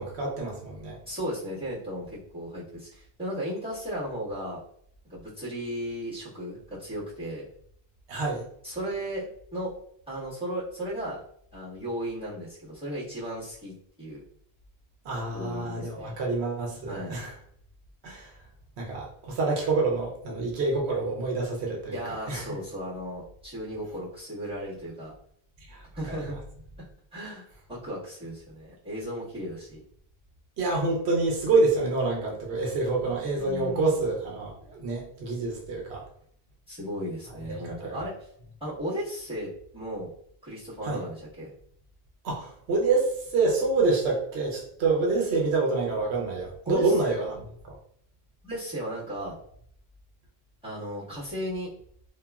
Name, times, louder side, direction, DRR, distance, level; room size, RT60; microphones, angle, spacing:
voice 1, 0.0-1.0 8.1-8.4 15.0-17.3 18.0-18.3 18.8-22.0 22.3-22.5 25.7-25.8 26.1-26.2 30.6-36.0 37.6-38.0 40.8-41.0 42.2-47.7, right 3 dB, 90° right, -1 dB, 0.9 m, -27 dB
voice 2, 1.1-4.6 5.0-7.5 8.6-9.7 10.1-11.2 11.5-14.2 15.3-16.1 16.9-17.2 21.9-25.1 26.0-26.4 26.8-26.9 27.1-29.8 33.0-34.0 36.7-38.3 38.6-40.1 40.4-41.5 46.6-46.9 48.4-49.4 50.6-51.7, equal, 5° right, -10 dB, 1.5 m, -35 dB
2.8 x 2.4 x 2.3 m, 0.66 s
omnidirectional pair, 1.1 m